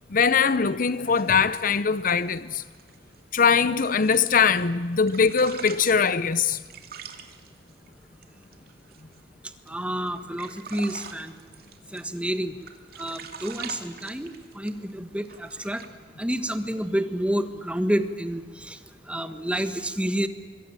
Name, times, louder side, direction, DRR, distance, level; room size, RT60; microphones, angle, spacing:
voice 1, 0.1-2.6 3.3-6.6, left 6 dB, 50° left, 0.7 m, -21 dB
sound 1, 0.9-4.7 4.9-9.2 9.6-9.7 10.1-12.3 12.6-14.9 15.3-15.9, right 6 dB, 60° right, 2.7 m, -44 dB
voice 2, 9.7-11.3 11.9-12.5 13.0-15.8 16.2-18.8 19.1-20.3, equal, 5° right, 1.4 m, -29 dB
25.5 x 22.5 x 9.0 m
head